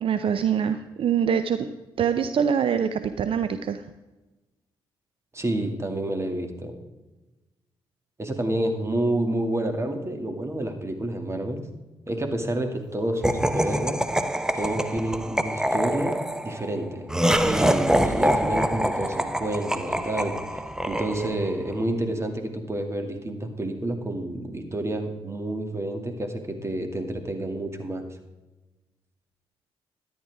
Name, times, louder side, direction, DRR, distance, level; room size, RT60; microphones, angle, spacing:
voice 1, 0.0-1.7 2.0-3.8, right 7 dB, 60° right, 10 dB, 0.6 m, -24 dB
voice 2, 5.3-6.7 8.2-11.6 12.1-14.0 14.5-16.2 16.4-17.1 17.4-20.3 20.9-28.0, right 1 dB, 25° right, 5 dB, 2.2 m, -29 dB
Laughter, 13.2-21.6, equal, 5° right, 0.8 m, -25 dB
13.5 x 10.5 x 3.5 m, 1.1 s
cardioid pair, 65°, 10 cm